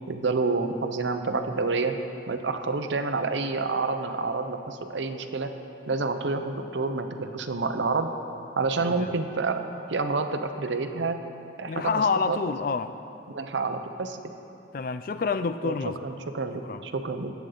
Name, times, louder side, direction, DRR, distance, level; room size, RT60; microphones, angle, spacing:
voice 1, 0.1-2.0 2.3-5.5 5.9-8.1 8.6-11.2 11.6-12.4 13.3-14.2 15.6-17.3, right 3 dB, 75° right, 7 dB, 0.7 m, -28 dB
voice 2, 11.7-12.9 14.7-16.0 16.7-16.8, left 5 dB, 45° left, 11 dB, 0.4 m, -27 dB
19.0 x 8.3 x 3.9 m, 2.7 s
head